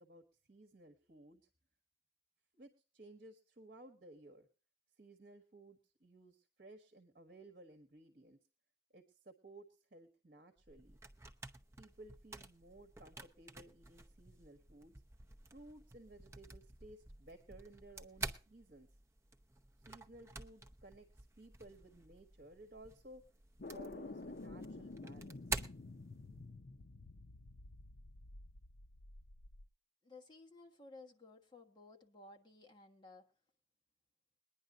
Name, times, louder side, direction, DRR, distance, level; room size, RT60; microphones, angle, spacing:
voice 1, 0.0-1.4 2.5-4.5 5.0-8.4 8.9-11.0 11.8-14.9 15.5-18.9 19.8-23.2 23.7-25.5, right 1 dB, 50° right, 1.3 m, -58 dB
sound 1, 10.6-26.6, right 3 dB, 15° right, 0.7 m, -50 dB
sound 2, 23.6-29.7, left 2 dB, 55° left, 0.6 m, -50 dB
voice 2, 30.0-33.3, left 2 dB, 25° left, 1.3 m, -57 dB
22.0 x 10.0 x 2.6 m
head